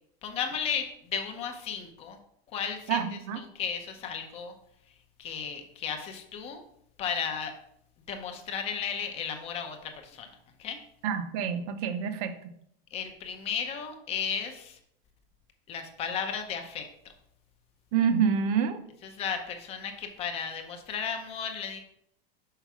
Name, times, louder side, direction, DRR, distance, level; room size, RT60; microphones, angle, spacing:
voice 1, 0.2-2.2 2.5-3.0 3.4-4.5 5.2-6.6 7.0-7.5 8.1-10.3 10.6-10.8 12.9-14.8 15.7-16.9 19.0-21.8, left 7 dB, 20° left, 6 dB, 0.6 m, -34 dB
voice 2, 2.9-3.4 11.0-12.4 17.9-18.8, right 7 dB, 40° right, 9 dB, 0.7 m, -27 dB
5.7 x 4.6 x 6.0 m, 0.73 s
supercardioid pair, 175°, 30 cm